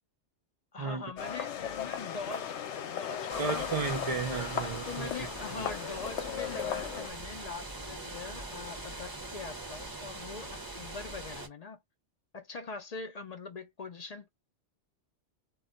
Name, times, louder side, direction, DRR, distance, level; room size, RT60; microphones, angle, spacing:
voice 1, 0.7-2.6 2.9-3.8 4.9-11.8 12.3-14.3, left 4 dB, 65° left, 0.4 m, -42 dB
sound 1, 1.2-7.1, left 8 dB, 80° left, 0.9 m, -37 dB
sound 2, 3.3-11.5, right 2 dB, 20° right, 0.7 m, -42 dB
voice 2, 3.4-5.1 5.5-5.6, right 4 dB, 55° right, 0.4 m, -33 dB
2.3 x 2.1 x 3.7 m
omnidirectional pair, 1.2 m